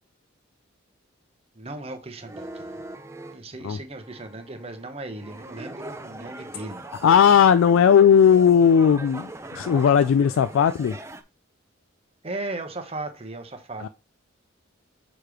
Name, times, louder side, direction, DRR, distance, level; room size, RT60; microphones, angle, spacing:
voice 1, 1.5-2.8 3.3-6.8 12.2-13.9, right 2 dB, 30° right, 0.9 m, -36 dB
sound 1, 2.2-3.4 4.0-11.2, right 2 dB, 15° right, 0.4 m, -41 dB
voice 2, 7.0-9.3 9.5-11.0 13.8-13.9, left 7 dB, 75° left, 0.3 m, -17 dB
6.6 x 3.0 x 4.9 m
head